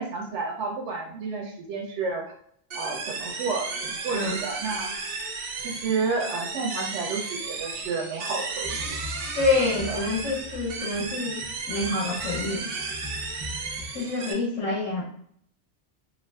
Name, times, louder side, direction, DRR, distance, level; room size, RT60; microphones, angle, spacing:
voice 1, 0.0-2.3 2.7-4.9 5.6-9.0 9.9-10.1, right 4 dB, 80° right, 1 dB, 0.9 m, -31 dB
sound 1, 2.7-14.3, right 4 dB, 60° right, 0.7 m, -34 dB
sound 2, 8.6-13.9, left 2 dB, 20° right, 0.3 m, -41 dB
voice 2, 9.3-12.7 13.9-15.0, left 3 dB, 35° left, -4 dB, 0.5 m, -27 dB
2.5 x 2.2 x 3.3 m, 0.66 s
omnidirectional pair, 1.2 m